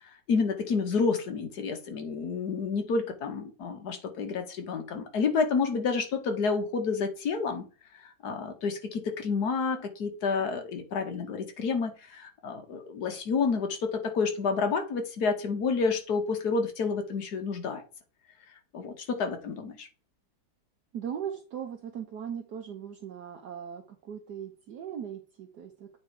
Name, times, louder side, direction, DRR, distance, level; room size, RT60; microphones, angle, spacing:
voice 1, 0.3-7.7 8.2-17.8 18.7-19.9, left 4 dB, 60° left, 5 dB, 1.7 m, -29 dB
voice 2, 20.9-25.9, right 8 dB, 65° right, 3 dB, 1.4 m, -39 dB
8.5 x 4.2 x 4.6 m, 0.35 s
omnidirectional pair, 2.0 m